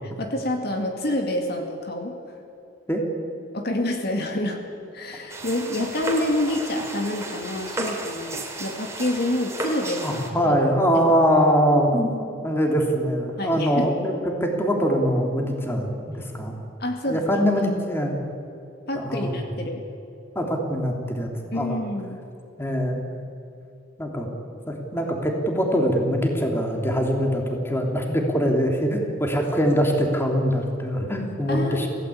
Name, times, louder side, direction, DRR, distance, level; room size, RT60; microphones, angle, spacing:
voice 1, 0.2-2.2 3.5-4.6 4.9-10.5 13.4-13.9 16.8-17.3 17.6-17.7 18.9-19.8 21.5-22.2 31.5-31.9, left 1 dB, 55° left, 3 dB, 2.3 m, -27 dB
sound 1, 5.3-10.3, right 2 dB, 15° right, 3.0 m, -33 dB
voice 2, 10.0-16.5 17.0-18.2 18.9-19.5 20.3-21.8 22.6-23.0 24.0-24.3 24.7-31.9, equal, 10° left, 1 dB, 3.0 m, -23 dB
26.0 x 16.5 x 8.5 m, 2.7 s
head